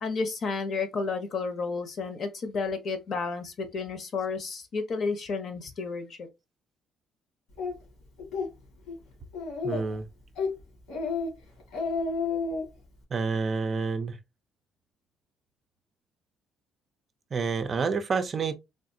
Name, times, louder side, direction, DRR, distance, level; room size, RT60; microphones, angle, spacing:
voice 1, 0.0-6.3, left 4 dB, 50° left, 0.8 m, -31 dB
Speech, 7.6-7.7 8.2-8.5 8.9-9.0 9.3-9.9 10.4-10.5 10.9-11.3 11.6-12.6, left 4 dB, 90° left, 1.7 m, -30 dB
voice 2, 9.6-10.1 13.1-14.2 17.3-18.6, right 4 dB, 35° right, 0.4 m, -28 dB
3.5 x 2.4 x 2.6 m
cardioid pair, 140°, 0 cm